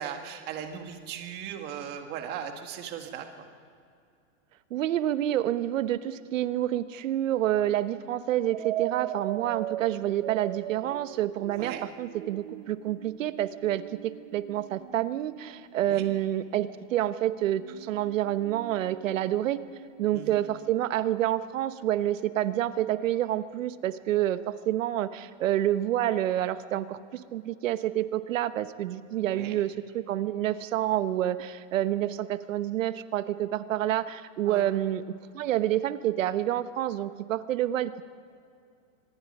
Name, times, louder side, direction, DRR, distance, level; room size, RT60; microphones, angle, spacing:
voice 1, 0.0-3.5 11.6-11.8 15.9-16.1 20.1-20.4 29.3-29.6 34.4-34.7, right 8 dB, 25° right, 5 dB, 1.6 m, -38 dB
voice 2, 4.7-19.6 20.0-35.0 35.3-38.0, right 12 dB, 70° right, 12 dB, 1.1 m, -28 dB
sound 1, 8.5-16.3 17.5-20.9, right 14 dB, 45° right, 0.7 m, -40 dB
25.5 x 20.5 x 5.4 m, 2.4 s
supercardioid pair, 170°, 40 cm